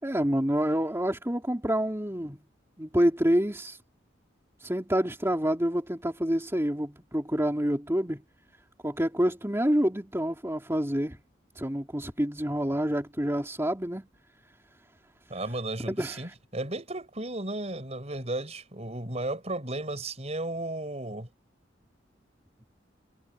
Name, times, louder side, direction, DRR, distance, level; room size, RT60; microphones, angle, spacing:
voice 1, 0.0-2.4 2.8-3.8 4.6-8.2 8.8-11.2 11.5-14.1 16.0-16.2, equal, 15° right, 3.3 m, -27 dB
voice 2, 15.3-21.3, right 2 dB, 35° right, 4.9 m, -34 dB
head